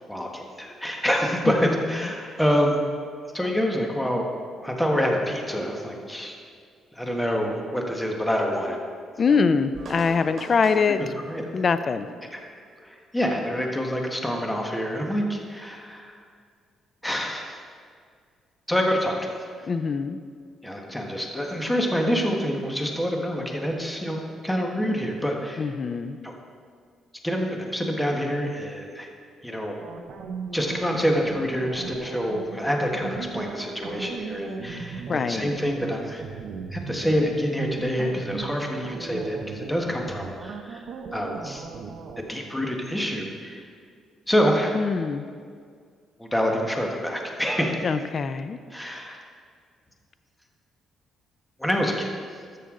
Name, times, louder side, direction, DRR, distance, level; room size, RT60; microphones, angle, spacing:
voice 1, 0.1-2.8 3.3-4.3 4.6-6.3 6.9-8.8 9.3-9.4 11.0-11.4 12.3-12.4 12.8-16.1 17.0-17.6 18.7-19.3 20.6-25.7 26.2-26.3 27.2-29.1 29.4-29.7 30.5-36.2 36.7-40.8 41.1-41.7 42.2-43.7 44.3-44.8 46.2-47.8 48.7-49.2 51.6-52.1, equal, 5° left, 1 dB, 1.4 m, -26 dB
voice 2, 1.5-2.1 9.2-11.0 11.5-12.1 19.7-20.2 25.6-26.2 35.1-35.5 44.7-45.2 47.8-48.6, left 5 dB, 45° left, 12 dB, 0.5 m, -24 dB
sound 1, 9.7-13.4, right 1 dB, 45° right, 2.7 m, -41 dB
sound 2, 29.8-42.2, right 5 dB, 65° right, 0.9 m, -37 dB
13.5 x 6.8 x 3.8 m, 2.1 s
cardioid pair, 90°, 0 cm